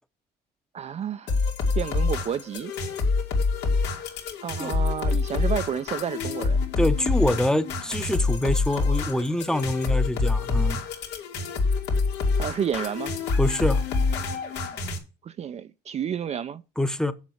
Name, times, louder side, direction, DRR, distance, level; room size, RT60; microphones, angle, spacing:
voice 1, 0.7-1.4 1.8-2.7 4.4-6.6 12.3-13.1 15.2-16.6, right 8 dB, 40° right, 0.5 m, -30 dB
sound 1, 1.3-15.0, left 4 dB, 90° left, 2.6 m, -26 dB
voice 2, 6.8-10.8 13.4-13.8 16.8-17.1, left 1 dB, 5° left, 0.8 m, -25 dB
7.2 x 6.0 x 7.8 m
cardioid pair, 110°, 17 cm